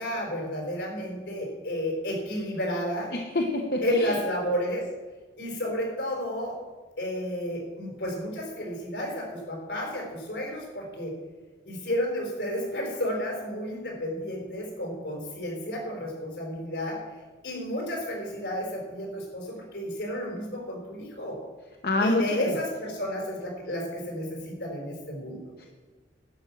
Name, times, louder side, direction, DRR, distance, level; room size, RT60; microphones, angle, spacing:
voice 1, 0.0-3.1 3.8-4.9 5.4-6.6 7.0-11.2 11.6-17.0 17.4-21.4 22.0-25.4, equal, 80° left, 0 dB, 4.8 m, -32 dB
voice 2, 3.1-4.2 21.8-22.5 25.6-25.7, left 2 dB, 55° left, 2 dB, 1.0 m, -26 dB
11.5 x 8.9 x 6.0 m, 1.4 s
head